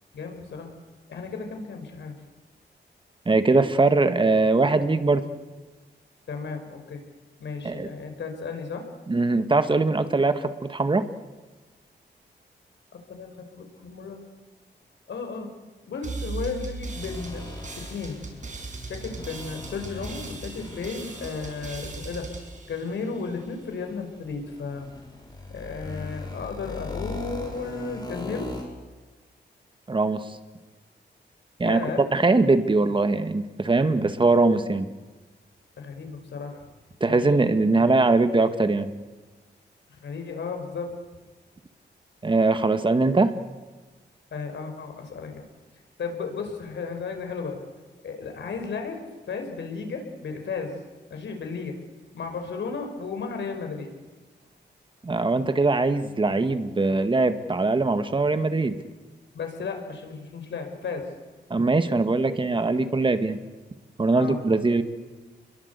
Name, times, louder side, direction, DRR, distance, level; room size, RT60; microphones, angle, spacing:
voice 1, 0.1-0.7 1.1-2.1 6.3-7.0 7.4-8.9 12.9-14.2 15.1-15.5 15.9-17.4 17.8-18.4 18.8-22.3 22.7-24.9 25.5-28.5 31.6-32.0 35.8-36.6 37.0-37.2 40.0-41.0 44.3-45.4 46.0-47.6 48.0-49.0 49.3-50.8 51.1-51.8 52.1-53.9 59.3-61.1 64.2-64.4, left 4 dB, 80° left, 4 dB, 5.3 m, -34 dB
voice 2, 3.2-5.2 7.6-7.9 9.1-11.1 29.9-30.2 31.6-31.8 32.1-34.9 37.0-38.9 42.2-43.3 55.0-58.7 61.5-63.4 64.0-64.8, right 3 dB, 25° right, 9 dB, 1.8 m, -21 dB
sound 1, 16.0-23.5, right 3 dB, 40° right, 6.1 m, -38 dB
sound 2, 16.9-28.6, left 2 dB, 20° left, 6.4 m, -40 dB
29.5 x 22.0 x 8.3 m, 1.3 s
wide cardioid pair, 120°, 18 cm